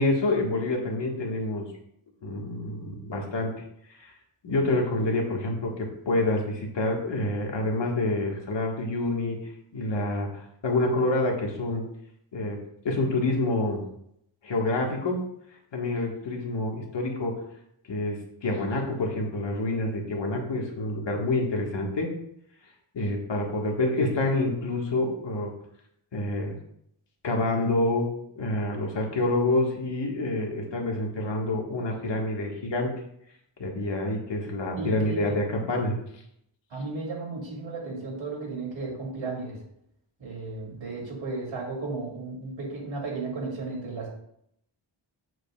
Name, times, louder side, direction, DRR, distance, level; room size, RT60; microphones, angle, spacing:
voice 1, 0.0-1.7 2.2-3.5 4.0-4.1 4.4-9.4 9.7-11.8 12.3-12.6 12.8-13.8 14.4-15.2 15.7-17.4 17.9-22.1 22.9-25.5 26.1-26.5 27.2-28.1 28.4-32.9 33.6-36.0, left 2 dB, 65° left, 0 dB, 1.6 m, -27 dB
voice 2, 34.7-35.4 36.7-39.6 40.2-44.1, right 3 dB, 80° right, -2 dB, 2.7 m, -34 dB
7.9 x 7.7 x 2.4 m, 0.74 s
wide cardioid pair, 115°, 46 cm